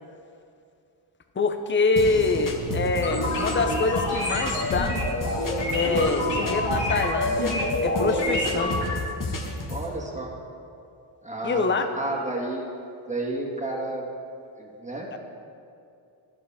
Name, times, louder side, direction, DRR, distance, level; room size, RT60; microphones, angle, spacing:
voice 1, 1.4-5.0 5.7-7.6 7.8-8.8 11.4-11.9 15.1-15.2, left 3 dB, 25° left, 7 dB, 0.7 m, -25 dB
sound 1, 2.0-9.9, left 3 dB, 40° left, 1.1 m, -33 dB
sound 2, 2.0-7.1, right 8 dB, 45° right, 0.5 m, -37 dB
sound 3, 3.0-8.9, left 1 dB, 60° left, 2.0 m, -27 dB
voice 2, 9.7-10.3 11.2-12.7 13.1-14.1 14.6-15.2, right 2 dB, 15° right, -2 dB, 1.9 m, -31 dB
12.0 x 7.3 x 3.6 m, 2.5 s
cardioid pair, 65°, 48 cm